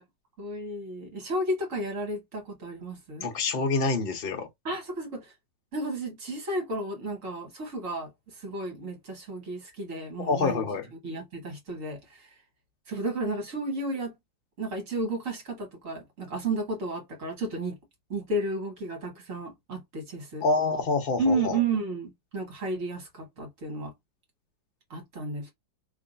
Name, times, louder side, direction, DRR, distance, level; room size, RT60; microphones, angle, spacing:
voice 1, 0.4-3.3 4.7-5.3 5.7-8.1 8.4-10.7 11.0-12.0 12.9-14.1 14.6-17.8 18.1-20.4 21.2-23.9 24.9-25.5, right 2 dB, 45° right, 1.8 m, -32 dB
voice 2, 3.2-4.5 10.2-10.9 20.4-21.6, left 3 dB, 40° left, 0.8 m, -27 dB
3.1 x 2.8 x 3.9 m
omnidirectional pair, 2.0 m